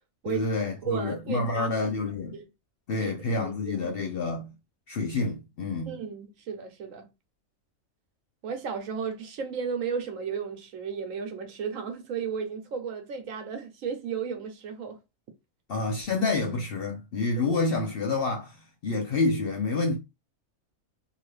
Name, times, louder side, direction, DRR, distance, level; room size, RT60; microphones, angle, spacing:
voice 1, 0.3-2.4 2.9-4.5 4.9-5.9 15.7-20.0, left 3 dB, 60° left, 0.7 m, -28 dB
voice 2, 0.8-1.9 2.3-2.4 3.3-3.9 5.9-7.1 8.4-15.0 17.5-17.6, right 6 dB, 70° right, 1.1 m, -34 dB
2.8 x 2.6 x 3.1 m
omnidirectional pair, 1.4 m